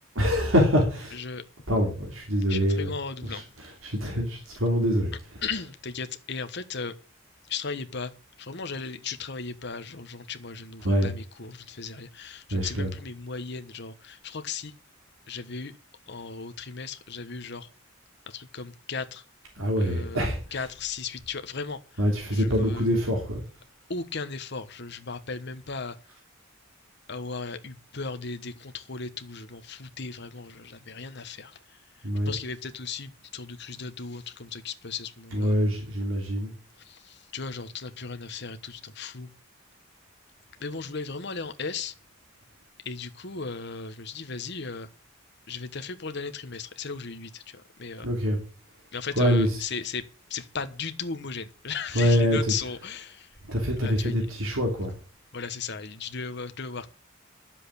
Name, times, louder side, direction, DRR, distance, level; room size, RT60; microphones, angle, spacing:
voice 1, 0.1-1.2 1.7-2.9 3.3-5.1 10.8-11.1 12.5-12.9 19.5-20.6 22.0-23.4 32.0-32.3 35.3-36.5 48.0-48.4 49.2-49.6 51.9-52.4 53.4-54.9, equal, 75° right, 1 dB, 3.1 m, -25 dB
voice 2, 1.1-1.4 2.5-3.4 5.4-7.0 7.5-8.1 8.4-14.7 15.3-15.8 16.1-17.7 18.3-19.2 19.8-20.2 20.5-22.0 22.3-22.9 23.9-26.0 27.1-31.8 32.2-35.5 36.8-39.3 40.6-41.9 42.8-44.9 45.5-48.1 48.9-50.0 50.3-53.4 53.8-54.2 55.3-56.9, left 5 dB, 55° left, 10 dB, 1.3 m, -36 dB
10.5 x 7.6 x 8.6 m, 0.38 s
head